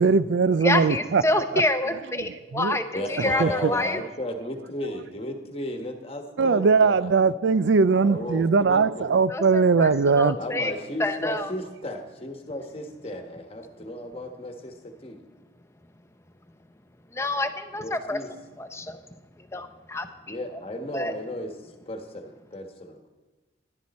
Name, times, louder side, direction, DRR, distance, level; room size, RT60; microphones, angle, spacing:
voice 1, 0.0-1.2 1.5-1.6 2.3-2.8 3.2-3.7 6.4-10.4, right 5 dB, 80° right, 0.4 m, -21 dB
voice 2, 0.6-4.0 9.3-10.7 11.0-11.5 17.1-18.2 18.6-19.0 19.5-20.4 20.9-21.1, left 2 dB, 15° left, 0.6 m, -27 dB
voice 3, 2.9-7.3 7.9-9.1 10.3-15.2 17.8-18.3 20.3-23.1, left 1 dB, 30° left, 1.2 m, -35 dB
15.0 x 11.0 x 4.2 m
head